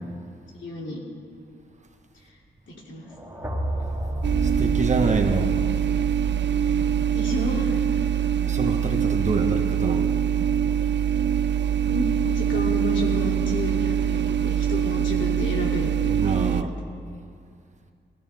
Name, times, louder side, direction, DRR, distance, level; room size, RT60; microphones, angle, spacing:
voice 1, 0.6-1.0 2.1-2.4 2.7-3.1 6.6-8.2 11.8-16.5, left 1 dB, 75° left, -2 dB, 3.2 m, -32 dB
sound 1, 3.1-7.1, right 1 dB, 10° right, 2.3 m, -31 dB
sound 2, 4.2-16.6, right 9 dB, 70° right, 0.5 m, -23 dB
voice 2, 4.4-5.5 8.5-10.1 10.7-10.8 16.2-16.7, right 2 dB, 40° right, 4 dB, 1.4 m, -26 dB
23.5 x 15.0 x 3.6 m, 2.2 s
cardioid pair, 90°, 19 cm